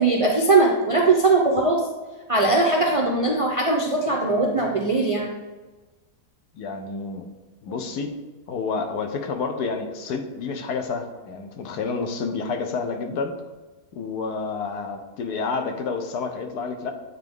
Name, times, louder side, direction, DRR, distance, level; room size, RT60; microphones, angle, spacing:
voice 1, 0.0-1.8 2.3-5.3, right 3 dB, 55° right, 0 dB, 0.3 m, -20 dB
voice 2, 6.5-7.3 7.6-8.1 8.5-13.4 13.9-16.9, left 4 dB, 85° left, 5 dB, 1.3 m, -29 dB
8.5 x 3.8 x 3.6 m, 1.2 s
omnidirectional pair, 1.7 m